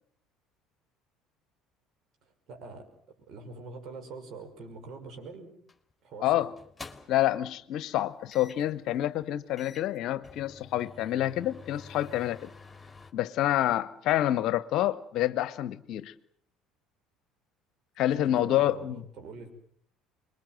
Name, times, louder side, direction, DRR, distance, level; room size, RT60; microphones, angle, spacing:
voice 1, 2.5-5.5 6.0-6.5 18.2-19.5, right 3 dB, 55° right, 5.8 m, -44 dB
sound 1, 5.7-5.9 6.6-7.3 8.3-8.7 9.2-9.3 9.6-13.1, left 4 dB, 15° left, 3.1 m, -49 dB
voice 2, 6.2-6.5 7.1-12.5 13.1-16.1 18.0-19.0, left 13 dB, 60° left, 1.0 m, -28 dB
26.0 x 22.0 x 7.7 m
hypercardioid pair, 60°, 0 cm